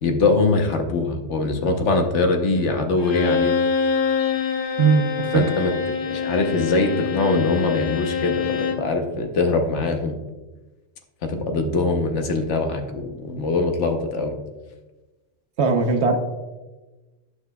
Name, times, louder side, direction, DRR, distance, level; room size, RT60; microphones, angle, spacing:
voice 1, 0.0-3.6 5.3-5.7 6.1-10.2 11.2-14.4, left 3 dB, 85° left, 4 dB, 1.2 m, -22 dB
Bowed string instrument, 3.0-8.9, left 6 dB, 55° left, 1.0 m, -25 dB
voice 2, 4.8-5.4 15.6-16.2, right 5 dB, 70° right, 5 dB, 1.1 m, -19 dB
11.5 x 5.6 x 2.3 m, 1.2 s
omnidirectional pair, 1.2 m